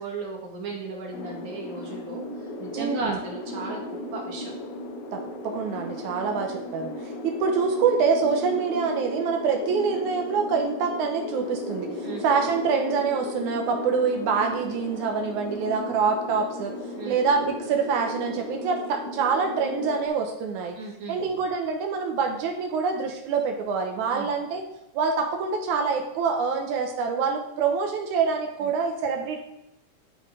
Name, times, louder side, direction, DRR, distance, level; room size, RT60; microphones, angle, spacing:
voice 1, 0.0-4.5 12.0-12.2 17.0-17.2 20.8-21.2 24.1-24.3 28.6-28.7, right 3 dB, 45° right, -2 dB, 2.6 m, -35 dB
sound 1, 1.1-20.1, left 1 dB, 65° left, 1.5 m, -35 dB
voice 2, 2.8-3.2 5.1-6.9 7.2-16.7 17.1-20.8 21.1-24.6 24.9-29.4, right 5 dB, 85° right, 3 dB, 2.4 m, -26 dB
11.0 x 5.4 x 4.8 m, 0.86 s
omnidirectional pair, 3.4 m